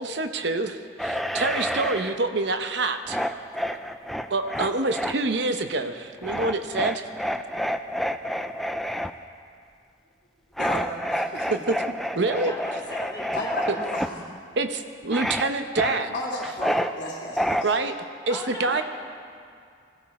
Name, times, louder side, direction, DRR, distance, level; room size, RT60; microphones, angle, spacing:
voice 1, 0.0-3.2 4.3-7.1 11.4-11.7 12.1-12.5 13.7-13.8 14.6-16.1 17.6-18.0 18.3-18.8, right 3 dB, 65° right, 7 dB, 0.8 m, -26 dB
sound 1, 1.0-2.2 3.0-5.1 6.2-9.1 10.6-14.1 15.1-15.5 15.8-16.9 17.4-17.6, equal, ahead, 0.4 m, -29 dB
voice 2, 10.5-11.5 13.3-14.1 16.1-17.8, left 1 dB, 50° left, -4 dB, 2.4 m, -33 dB
voice 3, 12.4-13.8 18.3-18.8, left 1 dB, 20° left, -3 dB, 2.0 m, -36 dB
21.0 x 15.5 x 4.2 m, 2.3 s
head